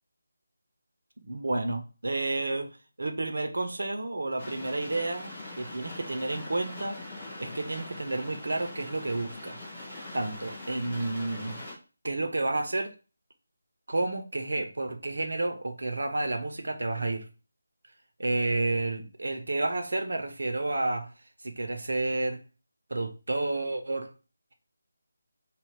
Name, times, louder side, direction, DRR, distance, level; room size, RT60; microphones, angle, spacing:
voice 1, 1.2-2.7 3.0-7.1 7.4-9.7 10.1-11.6 12.0-12.9 13.9-17.3 18.2-21.1 21.4-22.4 22.9-24.1, right 2 dB, 60° right, 5 dB, 0.7 m, -30 dB
sound 1, 4.4-11.8, left 2 dB, 25° left, 2.1 m, -42 dB
4.0 x 2.3 x 3.6 m, 0.34 s
figure-of-eight pair, 155°, 0 cm